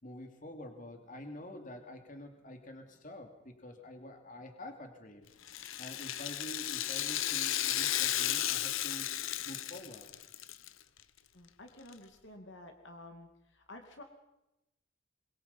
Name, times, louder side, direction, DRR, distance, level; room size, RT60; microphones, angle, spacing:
voice 1, 0.0-5.3 5.8-9.1 9.4-10.1, left 1 dB, 40° left, 4 dB, 2.8 m, -47 dB
Rattle (instrument), 5.4-10.7 11.0-11.1 11.9-12.0, left 12 dB, 75° left, 1.0 m, -34 dB
voice 2, 11.3-14.0, left 1 dB, 60° left, 4 dB, 2.6 m, -51 dB
25.5 x 22.5 x 5.6 m, 0.93 s
head